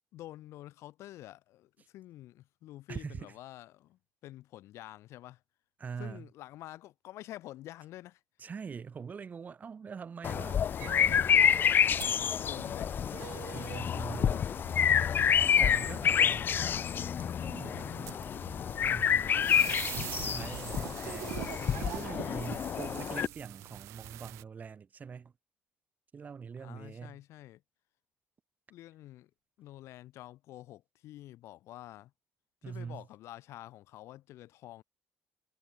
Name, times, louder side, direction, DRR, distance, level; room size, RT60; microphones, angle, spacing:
voice 1, 0.1-5.4 6.0-8.2 12.0-13.0 16.0-16.8 17.1-18.1 26.6-27.6 28.7-29.3 29.6-32.1 32.7-34.8, left 15 dB, 75° left, 3.5 m, -49 dB
voice 2, 2.9-3.3 5.8-6.3 8.4-10.6 13.5-14.4 15.6-16.5 17.4-18.2 18.8-19.5 20.2-21.4 21.8-25.3 26.1-27.2 32.6-33.0, right 6 dB, 35° right, 2.1 m, -43 dB
sound 1, 10.2-23.3, left 8 dB, 45° left, 0.8 m, -28 dB
sound 2, 10.8-24.4, right 18 dB, 80° right, 1.5 m, -45 dB
cardioid pair, 100°, 5 cm